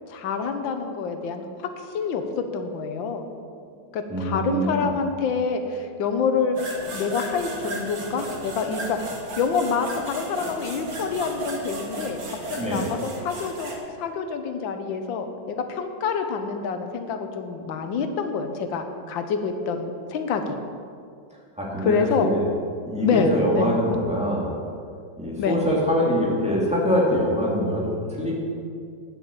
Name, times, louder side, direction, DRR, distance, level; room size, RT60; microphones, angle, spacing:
voice 1, 0.1-1.7 1.9-3.3 3.9-6.6 6.9-12.2 12.5-13.7 14.0-20.5 21.8-22.3 23.0-23.7 25.4-25.6, left 5 dB, 90° left, 7 dB, 1.6 m, -27 dB
voice 2, 4.1-4.9 12.6-12.9 21.6-22.4 22.9-24.5 25.2-28.3, equal, 5° right, -5 dB, 2.3 m, -24 dB
sound 1, 6.5-13.8, right 2 dB, 50° right, 1.9 m, -35 dB
9.0 x 7.7 x 7.1 m, 2.3 s
omnidirectional pair, 2.0 m